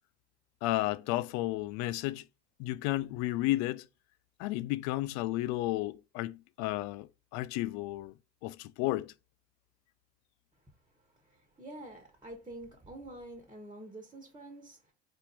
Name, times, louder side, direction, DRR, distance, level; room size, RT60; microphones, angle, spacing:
voice 1, 0.6-2.3 2.6-3.8 4.4-8.1 8.4-9.1, left 17 dB, 55° left, 0.5 m, -32 dB
voice 2, 11.3-14.8, right 1 dB, 15° right, 1.4 m, -47 dB
4.3 x 2.6 x 4.4 m
hypercardioid pair, 70°, 33 cm